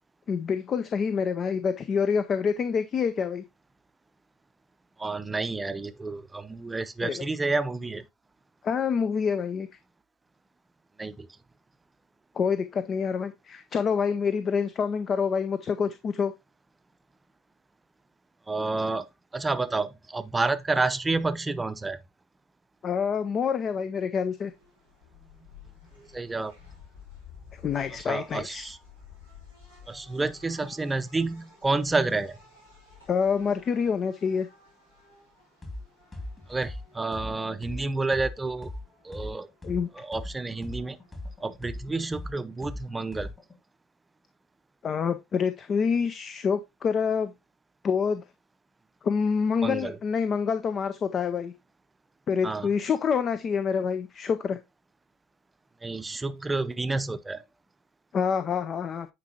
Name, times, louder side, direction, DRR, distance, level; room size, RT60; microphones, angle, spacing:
voice 1, 0.3-3.4 7.0-7.2 8.6-9.7 12.4-16.3 22.8-24.5 27.6-28.7 33.1-34.5 39.6-39.9 44.8-47.3 47.8-48.2 49.0-51.5 52.3-54.6 58.1-59.1, left 6 dB, 40° left, 0.6 m, -27 dB
voice 2, 5.0-8.0 11.0-11.3 18.5-19.0 19.3-22.0 26.0-26.5 28.1-28.8 29.9-32.3 36.5-38.7 39.0-39.5 40.0-41.0 41.4-43.3 49.6-50.0 52.4-52.7 55.8-57.4, right 3 dB, 15° right, 0.7 m, -29 dB
sound 1, 24.3-43.3, left 6 dB, 90° left, 2.9 m, -54 dB
sound 2, 35.6-35.8 36.1-39.8 40.1-43.5, left 1 dB, 20° left, 2.4 m, -38 dB
9.6 x 4.6 x 2.8 m
figure-of-eight pair, 65°, 0 cm